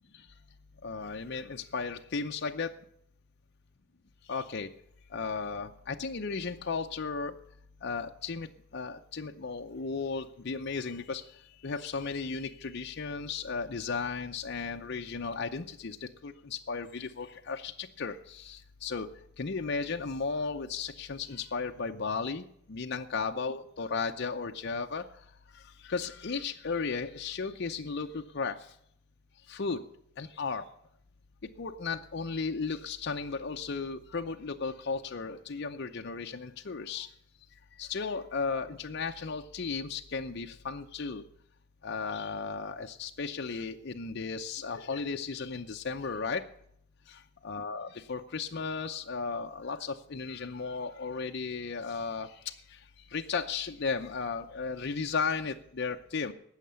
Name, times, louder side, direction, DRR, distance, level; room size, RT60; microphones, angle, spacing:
voice 1, 0.8-2.7 4.3-4.7 5.1-7.3 7.8-8.5 8.7-11.2 11.6-19.1 19.4-25.1 25.8-28.6 29.5-29.8 30.2-30.7 31.6-37.1 37.8-41.2 41.8-46.4 47.1-52.5 53.1-56.3, left 4 dB, 60° left, 4 dB, 0.7 m, -35 dB
18.0 x 6.6 x 6.9 m, 0.70 s
head